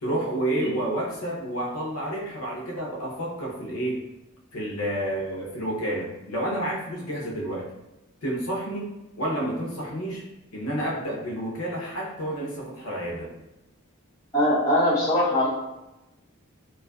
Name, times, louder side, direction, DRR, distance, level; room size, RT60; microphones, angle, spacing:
voice 1, 0.0-4.1 4.5-7.7 8.2-10.2 10.5-13.3, right 1 dB, 85° left, -3 dB, 0.6 m, -30 dB
voice 2, 14.3-15.5, left 1 dB, 15° left, -10 dB, 0.7 m, -21 dB
2.6 x 2.3 x 2.2 m, 0.99 s
head